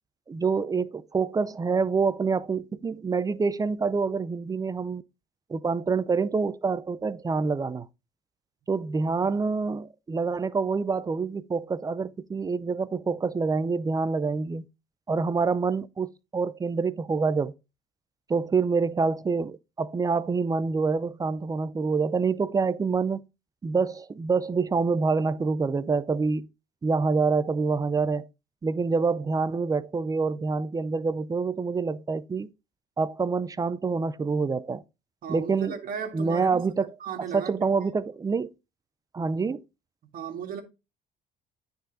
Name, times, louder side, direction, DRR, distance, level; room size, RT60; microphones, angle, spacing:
voice 1, 0.3-5.0 5.5-7.9 8.7-14.6 15.1-17.5 18.3-23.2 23.6-26.5 26.8-28.3 28.6-32.5 33.0-34.8 35.3-35.7 36.1-36.9 37.3-38.5 39.1-39.6, right 4 dB, 20° right, 0.5 m, -26 dB
voice 2, 35.2-36.7 37.0-37.9 40.0-40.6, right 7 dB, 55° right, 1.9 m, -36 dB
9.2 x 4.1 x 3.8 m
cardioid pair, 110°, 17 cm